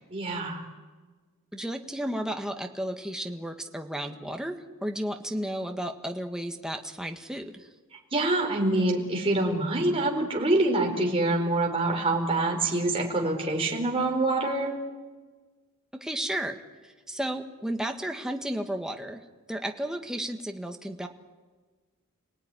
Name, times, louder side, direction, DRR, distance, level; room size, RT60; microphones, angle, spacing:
voice 1, 0.1-0.6 8.1-14.7, right 2 dB, 25° right, 0 dB, 4.5 m, -25 dB
voice 2, 1.5-7.7 16.0-19.2 19.5-21.1, right 1 dB, 5° right, 4 dB, 1.6 m, -33 dB
29.5 x 18.5 x 10.0 m, 1.4 s
head